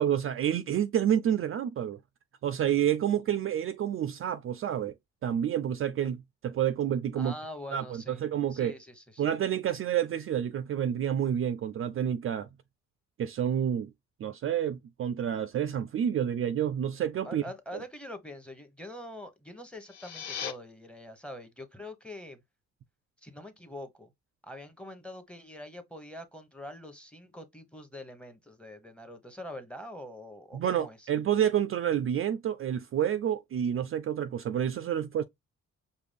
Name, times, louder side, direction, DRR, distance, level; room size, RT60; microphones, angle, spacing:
voice 1, 0.0-2.0 2.4-4.9 5.2-7.3 7.7-8.8 9.2-12.5 13.2-13.9 14.2-17.4 30.5-35.2, right 10 dB, 45° right, 0.4 m, -29 dB
voice 2, 7.2-8.2 8.5-9.2 17.2-22.4 23.2-24.1 24.4-31.1, left 1 dB, 5° left, 1.0 m, -44 dB
sound 1, 19.7-20.5, left 8 dB, 60° left, 0.9 m, -38 dB
5.0 x 2.3 x 3.4 m
cardioid pair, 90°, 30 cm